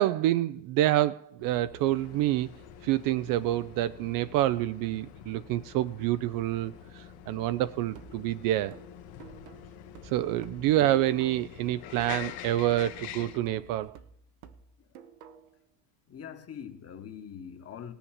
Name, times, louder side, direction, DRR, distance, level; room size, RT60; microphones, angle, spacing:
voice 1, 0.0-2.5 2.8-8.8 10.0-14.0, right 14 dB, 45° right, 0.5 m, -27 dB
sound 1, 1.4-13.9, left 4 dB, 85° left, 1.6 m, -52 dB
sound 2, 1.9-13.4, left 13 dB, 60° left, 1.2 m, -47 dB
sound 3, 8.0-11.6 12.0-15.6, right 8 dB, 75° right, 1.3 m, -52 dB
voice 2, 16.1-17.9, left 8 dB, 30° left, 1.3 m, -43 dB
17.0 x 7.1 x 7.3 m
supercardioid pair, 110°, 48 cm